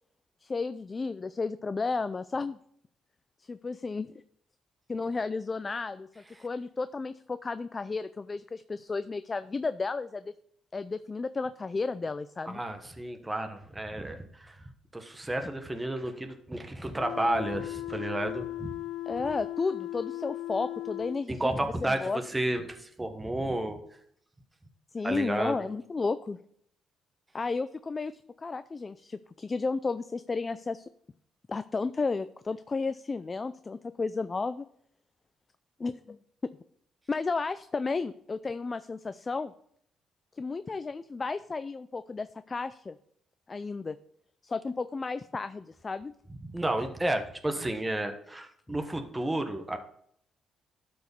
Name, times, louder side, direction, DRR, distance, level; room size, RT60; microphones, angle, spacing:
voice 1, 0.4-2.6 3.4-4.2 4.9-10.3 10.7-12.6 19.1-22.2 24.9-26.4 27.3-28.1 28.4-30.9 31.5-34.7 35.8-36.2 37.1-39.5 40.4-43.0 43.5-44.0 44.4-46.1, left 4 dB, 30° left, 13 dB, 0.4 m, -33 dB
voice 2, 12.5-14.6 14.9-18.7 21.3-23.8 25.0-25.6 46.4-49.8, right 1 dB, 15° right, 6 dB, 1.2 m, -32 dB
sound 1, 17.0-21.2, left 15 dB, 80° left, 0.6 m, -37 dB
12.0 x 4.9 x 5.3 m, 0.68 s
cardioid pair, 90°, 0 cm